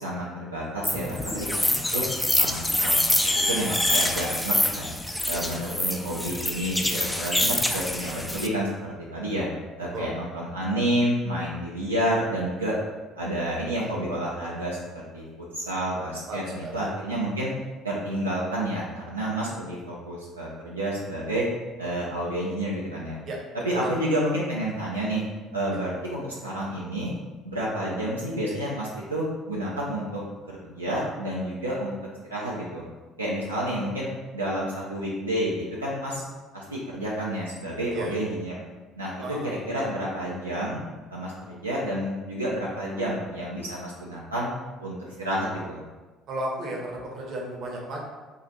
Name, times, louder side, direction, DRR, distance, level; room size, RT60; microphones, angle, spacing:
voice 1, 0.0-2.0 2.4-3.0 3.3-4.9 5.3-9.5 9.8-12.8 13.2-14.8 15.1-15.2 15.5-17.5 17.8-21.4 21.8-23.2 23.6-25.2 25.5-27.1 27.4-30.2 30.5-31.9 32.3-32.8 33.2-34.1 34.3-36.2 36.5-38.5 39.0-39.1 39.4-40.8 41.1-44.5 44.8-45.8, right 1 dB, 85° right, -6 dB, 0.4 m, -29 dB
sound 1, 0.8-8.5, left 1 dB, 5° left, 0.3 m, -25 dB
voice 2, 5.3-5.8 6.9-7.2 9.9-10.1 16.3-16.8 23.3-23.4 23.7-23.8 25.7-25.8 37.9-38.2 39.2-39.6 46.3-48.0, right 1 dB, 45° right, -1 dB, 0.8 m, -34 dB
2.8 x 2.4 x 4.0 m, 1.2 s
figure-of-eight pair, 55°, 0 cm